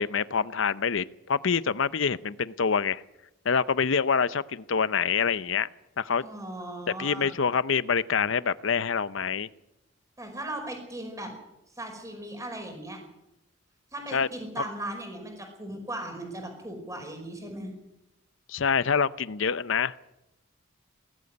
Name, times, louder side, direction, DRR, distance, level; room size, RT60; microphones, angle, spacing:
voice 1, 0.0-3.0 3.4-5.7 6.0-6.2 7.0-9.5 14.1-14.3 18.5-20.0, left 6 dB, 65° left, 17 dB, 0.6 m, -26 dB
voice 2, 6.2-7.3 10.2-11.3 11.8-13.0 13.9-17.7, right 1 dB, 15° right, 4 dB, 5.2 m, -37 dB
19.0 x 14.0 x 9.7 m, 0.88 s
head